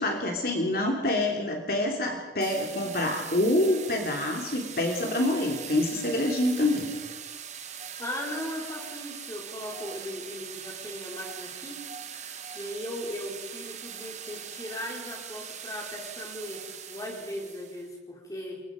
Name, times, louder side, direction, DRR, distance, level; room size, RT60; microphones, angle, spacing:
voice 1, 0.0-6.9, left 1 dB, 55° left, 1 dB, 3.1 m, -26 dB
sound 1, 2.4-17.9, right 8 dB, 40° right, 1.6 m, -41 dB
voice 2, 8.0-11.8 12.5-18.6, left 1 dB, 20° left, -1 dB, 4.7 m, -38 dB
28.5 x 22.5 x 5.3 m, 1.2 s
head